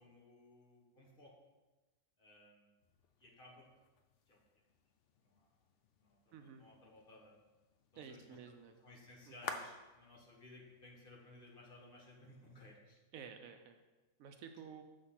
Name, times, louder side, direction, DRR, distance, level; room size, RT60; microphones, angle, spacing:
voice 1, 0.0-1.3 2.2-2.7 3.2-3.6 4.3-4.4 5.2-5.5 6.0-7.3 7.9-13.0, left 2 dB, 40° left, -2 dB, 1.3 m, -59 dB
sound 1, 2.8-12.8, left 5 dB, 65° left, 0.8 m, -54 dB
voice 2, 6.3-6.6 8.0-8.7 9.3-9.4 13.1-13.8 14.2-14.8, right 7 dB, 70° right, 6 dB, 0.9 m, -52 dB
7.0 x 3.4 x 5.7 m, 1.1 s
omnidirectional pair, 1.6 m